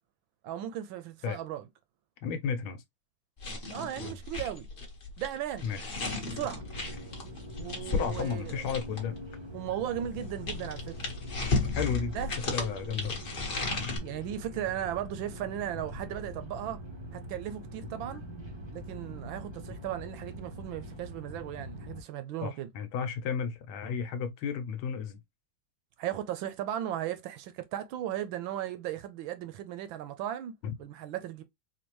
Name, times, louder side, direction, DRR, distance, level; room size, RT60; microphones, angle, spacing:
voice 1, 0.4-1.7 3.7-4.7 5.2-5.7 6.3-6.7 7.6-8.6 9.5-11.0 12.1-12.3 14.0-16.8 17.1-18.2 18.7-22.7 26.0-31.4, right 11 dB, 75° right, 1.3 m, -36 dB
voice 2, 2.2-2.8 5.6-5.9 7.8-9.2 11.7-12.1 12.4-13.3 22.4-25.2 30.6-30.7, left 6 dB, 80° left, 1.5 m, -33 dB
sound 1, 3.4-9.2 10.0-14.0, left 3 dB, 35° left, 1.0 m, -34 dB
sound 2, 6.5-22.0, equal, 35° right, 0.4 m, -43 dB
4.4 x 2.5 x 3.0 m
omnidirectional pair, 2.3 m